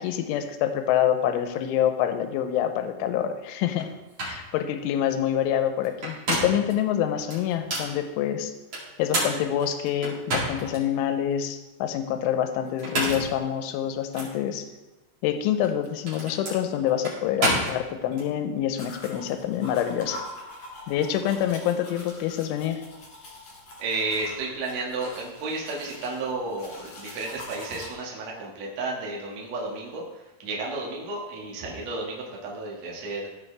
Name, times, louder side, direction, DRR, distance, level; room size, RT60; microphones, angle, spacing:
voice 1, 0.0-3.9 4.2-8.5 9.0-14.7 15.2-20.2 20.9-22.8, left 10 dB, 80° left, 7 dB, 2.9 m, -26 dB
sound 1, 3.8-3.9 4.2-4.4 5.8-6.7 7.3-7.9 8.7-10.8 11.3-11.4 12.7-13.4 14.1-14.3 15.5-18.3, right 1 dB, 35° right, 2.8 m, -29 dB
sound 2, 18.8-27.9, left 1 dB, 45° left, 2.3 m, -44 dB
voice 2, 23.8-33.3, right 3 dB, 75° right, -3 dB, 1.5 m, -32 dB
15.0 x 6.1 x 3.3 m, 1.0 s
omnidirectional pair, 5.9 m